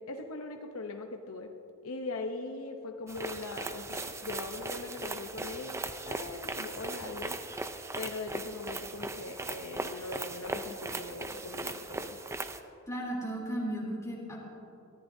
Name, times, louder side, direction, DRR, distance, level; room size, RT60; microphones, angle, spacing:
voice 1, 0.0-1.5 1.8-7.4 8.0-12.2, left 3 dB, 70° left, 4 dB, 0.8 m, -40 dB
sound 1, 3.1-12.6, right 2 dB, 15° right, 0.5 m, -39 dB
voice 2, 12.9-14.4, right 1 dB, 15° left, -4 dB, 3.2 m, -35 dB
22.5 x 14.5 x 2.7 m, 2.8 s
head